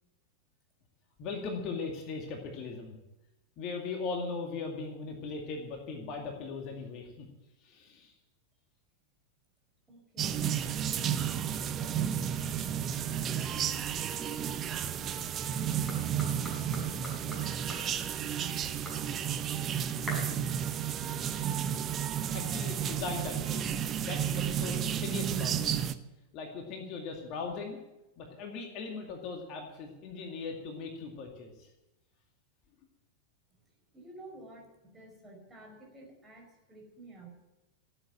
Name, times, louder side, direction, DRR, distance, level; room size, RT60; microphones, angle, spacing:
voice 1, 1.2-2.9 3.6-7.3 7.6-8.1 22.3-23.7 24.0-25.7 26.3-27.8 28.2-31.7, left 4 dB, 40° left, 2 dB, 2.2 m, -39 dB
voice 2, 9.9-12.5 12.8-19.0 19.5-20.1 33.5-37.3, right 2 dB, 15° right, 0 dB, 5.1 m, -52 dB
sound 1, 10.2-25.9, right 9 dB, 30° right, 0.8 m, -32 dB
sound 2, 15.5-23.3, left 1 dB, 10° left, 6.2 m, -48 dB
15.5 x 8.1 x 8.9 m, 0.97 s
figure-of-eight pair, 90°, 0 cm